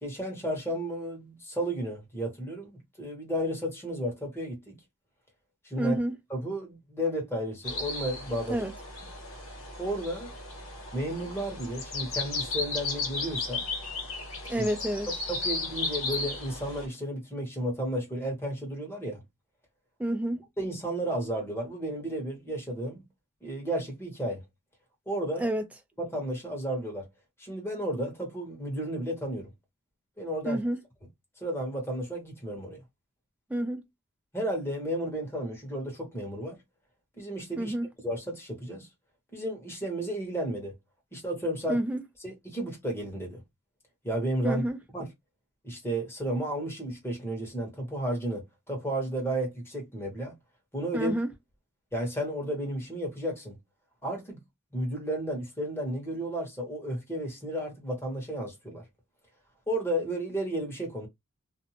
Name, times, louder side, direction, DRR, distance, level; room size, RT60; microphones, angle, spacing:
voice 1, 0.0-2.7 3.0-4.8 5.6-6.0 6.3-8.6 9.8-10.3 10.9-13.6 14.6-14.7 15.3-19.2 20.6-23.0 23.4-24.4 25.1-25.5 26.0-27.1 27.4-29.5 30.2-30.6 31.4-32.8 34.3-36.6 37.2-37.7 38.0-38.9 39.3-40.7 41.1-41.8 42.2-43.4 44.0-44.6 44.9-45.1 45.6-50.4 50.7-51.1 51.9-53.6 54.0-54.4 54.7-58.8 59.7-61.1, right 1 dB, 10° left, 1.1 m, -33 dB
voice 2, 5.8-6.2 8.5-8.7 14.5-15.1 20.0-20.4 25.4-25.6 30.4-30.8 33.5-33.8 37.6-37.9 41.7-42.0 44.4-44.8 50.9-51.3, right 1 dB, 5° right, 0.4 m, -29 dB
sound 1, 7.6-16.9, left 3 dB, 75° left, 1.3 m, -35 dB
2.6 x 2.1 x 2.8 m
head